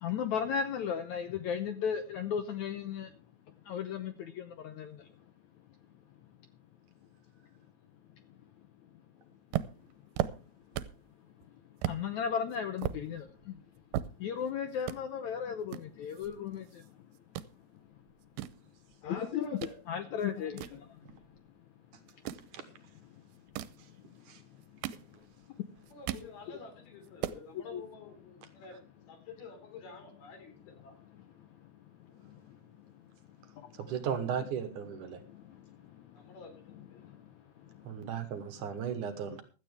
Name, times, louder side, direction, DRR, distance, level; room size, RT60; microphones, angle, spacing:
voice 1, 0.0-3.1 3.7-5.0 11.9-13.3 14.2-16.7 19.0-19.5 19.9-20.7 27.7-27.8, left 7 dB, 70° left, 9 dB, 1.8 m, -34 dB
sound 1, 9.5-11.1 11.4-11.5 11.8-12.0 12.5-14.5 14.8-15.0 15.7-16.9 17.1-17.5 18.1-19.8 20.2-21.5 22.1-22.5 23.3-23.8 24.5-25.4 25.8-26.3 26.7-26.8 27.0-27.4, right 13 dB, 85° right, 2.6 m, -37 dB
voice 2, 19.0-19.8 20.4-20.5 25.9-28.8 29.1-31.0 33.8-34.3 36.1-37.0, left 3 dB, 85° left, 6 dB, 5.6 m, -49 dB
voice 3, 33.8-35.2 37.9-39.4, right 8 dB, 65° right, 9 dB, 2.4 m, -36 dB
16.0 x 12.5 x 3.4 m, 0.34 s
omnidirectional pair, 4.2 m